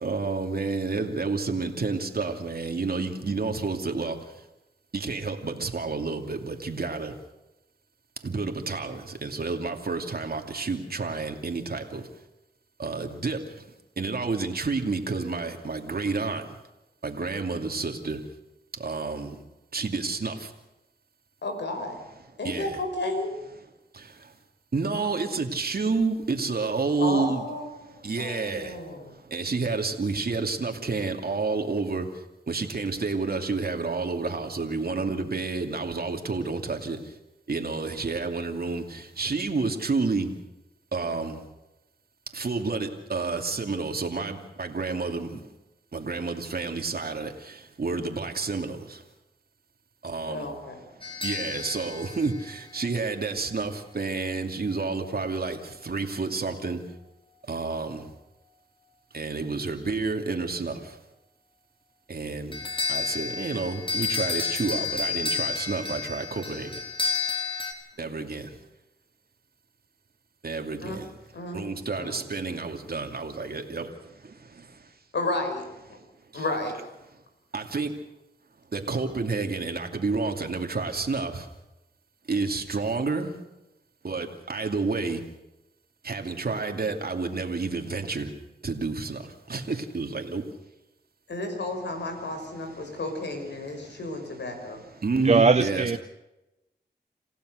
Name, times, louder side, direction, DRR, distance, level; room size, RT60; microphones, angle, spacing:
voice 1, 0.0-4.1 4.9-7.1 8.2-12.0 12.8-13.4 14.0-16.4 17.0-18.2 18.8-19.3 19.7-20.3 22.4-22.7 24.7-27.4 28.0-28.7 29.3-32.0 32.5-37.0 37.5-38.8 39.2-40.3 40.9-41.3 42.3-45.3 45.9-47.3 47.8-48.7 50.0-50.4 51.2-55.6 55.8-56.8 57.5-58.0 59.1-60.7 62.1-62.5 62.9-66.7 68.0-68.4 70.4-70.8 71.5-73.8 77.5-77.9 78.7-81.3 82.3-83.3 84.0-85.2 86.1-88.3 88.6-89.2 89.5-90.4 95.0-96.0, right 4 dB, 60° right, 4 dB, 2.6 m, -29 dB
voice 2, 21.4-22.0 22.4-23.4 27.0-29.1 50.3-50.8 68.1-68.2 70.8-71.0 71.3-71.6 72.0-72.2 75.1-75.7 76.3-76.8 91.3-94.8, left 2 dB, 80° left, 4 dB, 5.7 m, -32 dB
sound 1, 51.0-53.3 62.5-67.7, left 4 dB, 30° left, 4.3 m, -31 dB
voice 3, 95.2-96.0, right 4 dB, 40° right, 10 dB, 0.7 m, -20 dB
28.0 x 16.0 x 6.5 m, 0.94 s
cardioid pair, 50°, 18 cm